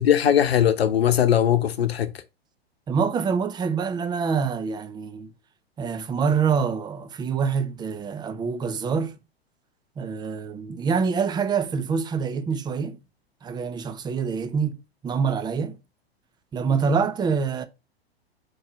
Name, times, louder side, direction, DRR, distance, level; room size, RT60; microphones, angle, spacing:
voice 1, 0.0-2.1, left 10 dB, 70° left, 0.9 m, -20 dB
voice 2, 2.9-5.3 5.8-9.2 10.0-13.0 13.4-14.8 15.0-15.8 16.5-17.6, right 6 dB, 15° right, 0.6 m, -25 dB
4.6 x 4.4 x 5.9 m
figure-of-eight pair, 100°, 31 cm